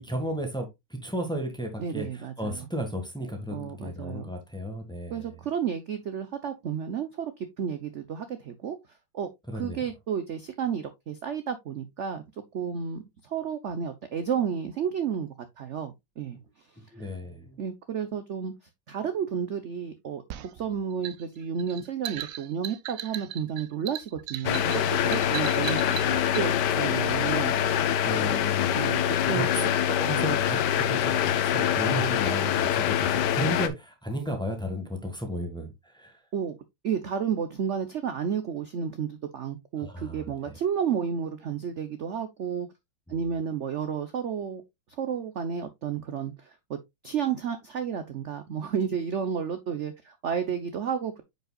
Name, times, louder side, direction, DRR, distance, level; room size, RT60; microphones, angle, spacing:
voice 1, 0.0-5.4 9.5-9.8 16.8-17.6 27.9-28.8 29.3-29.6 29.9-36.2 39.8-40.3 43.1-43.2, equal, ahead, 1.5 m, -34 dB
voice 2, 1.8-2.7 3.5-4.3 5.1-8.8 9.1-12.2 12.5-15.3 15.6-16.4 17.0-17.1 17.6-18.5 18.9-27.5 28.8-29.0 29.3-29.7 30.2-30.4 36.3-36.6 36.8-42.7 43.1-44.6 44.9-46.8 47.0-51.2, right 7 dB, 55° right, 0.8 m, -32 dB
sound 1, 20.3-26.5, right 11 dB, 90° right, 0.7 m, -38 dB
sound 2, 24.4-33.7, left 10 dB, 70° left, 1.2 m, -25 dB
9.1 x 5.4 x 2.3 m
omnidirectional pair, 2.1 m